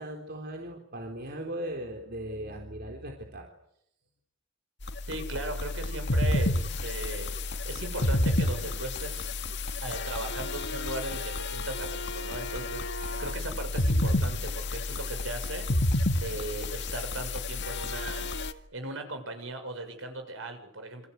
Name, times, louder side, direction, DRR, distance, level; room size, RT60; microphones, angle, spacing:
voice 1, 0.0-3.5, right 1 dB, 50° right, 2 dB, 3.9 m, -38 dB
sound 1, 4.8-18.5, left 2 dB, 60° left, 1.9 m, -30 dB
voice 2, 5.1-7.3 7.6-9.3 9.8-15.9 16.2-18.3 18.7-21.1, right 2 dB, 70° right, 7 dB, 6.9 m, -38 dB
28.5 x 25.5 x 8.2 m, 0.77 s
head